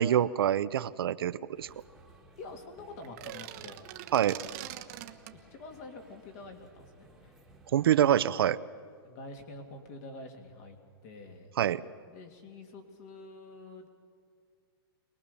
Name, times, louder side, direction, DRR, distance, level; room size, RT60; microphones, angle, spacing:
voice 1, 0.0-1.7 4.1-4.4 7.7-8.6 11.6-11.8, right 10 dB, 70° right, 14 dB, 0.7 m, -25 dB
sound 1, 1.5-8.1, right 2 dB, ahead, 1.8 m, -58 dB
voice 2, 2.4-3.9 5.3-7.3 9.0-11.5 12.1-13.9, left 2 dB, 40° left, 5 dB, 2.8 m, -47 dB
sound 2, 3.0-5.4, right 14 dB, 35° right, 1.0 m, -43 dB
24.0 x 20.0 x 7.0 m, 2.1 s
hypercardioid pair, 160°, 13 cm